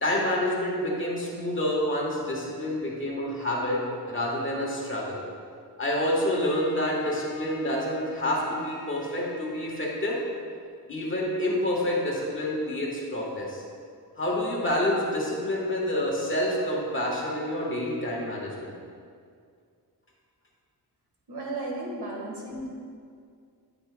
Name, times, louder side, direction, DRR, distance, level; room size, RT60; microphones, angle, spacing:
voice 1, 0.0-3.8 4.1-5.2 5.8-10.2 10.9-13.6 14.2-18.7, left 1 dB, 30° left, -3 dB, 1.4 m, -28 dB
Bowed string instrument, 6.1-10.5, left 4 dB, 60° left, 0.7 m, -41 dB
voice 2, 21.3-22.7, right 2 dB, 80° right, -2 dB, 1.7 m, -34 dB
9.0 x 8.7 x 2.3 m, 2.2 s
wide cardioid pair, 145°, 39 cm